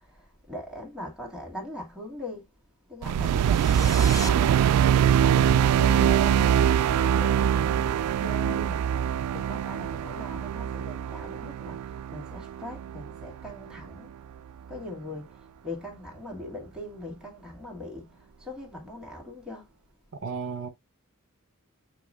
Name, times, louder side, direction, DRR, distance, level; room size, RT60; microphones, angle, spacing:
voice 1, 0.0-2.5 2.9-4.6 5.3-8.8 9.3-14.1 14.7-19.7, equal, 5° right, 2.0 m, -40 dB
sound 1, 3.0-13.5, right 9 dB, 85° right, 0.3 m, -23 dB
sound 2, 3.2-4.3, left 5 dB, 15° left, 0.4 m, -38 dB
voice 2, 20.2-20.7, right 4 dB, 60° right, 0.7 m, -33 dB
6.8 x 3.0 x 2.5 m
head